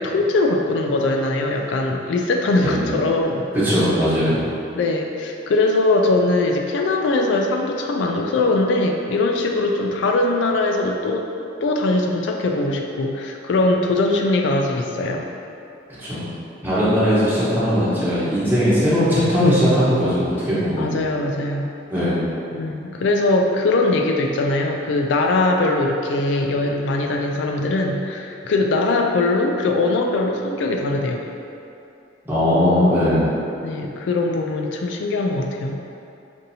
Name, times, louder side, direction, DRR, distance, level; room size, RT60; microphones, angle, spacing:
voice 1, 0.0-3.5 4.7-11.3 11.6-15.3 20.8-21.7 22.5-31.2 33.6-35.8, left 2 dB, 70° left, 2 dB, 0.3 m, -21 dB
voice 2, 2.6-3.0 3.5-4.4 16.0-16.3 16.6-21.0 21.9-22.2 32.2-33.3, equal, 10° right, -11 dB, 1.0 m, -19 dB
5.3 x 2.6 x 2.7 m, 2.6 s
head